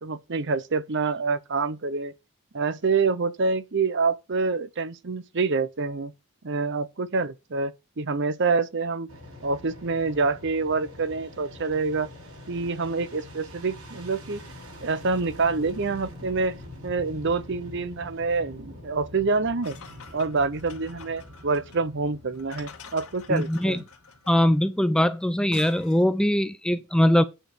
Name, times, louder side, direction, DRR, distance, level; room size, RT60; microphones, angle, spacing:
voice 1, 0.0-2.1 2.5-6.1 6.4-9.1 9.4-12.1 12.5-14.4 14.8-16.6 16.8-19.8 20.1-23.8, right 4 dB, 50° right, 0.7 m, -26 dB
Fixed-wing aircraft airplane, 9.1-24.3, left 1 dB, 80° right, 6.3 m, -45 dB
sound 1, 19.6-26.1, left 5 dB, 75° left, 1.8 m, -47 dB
voice 2, 23.3-23.8 24.3-27.2, left 1 dB, 5° left, 0.4 m, -21 dB
8.9 x 5.1 x 5.8 m
head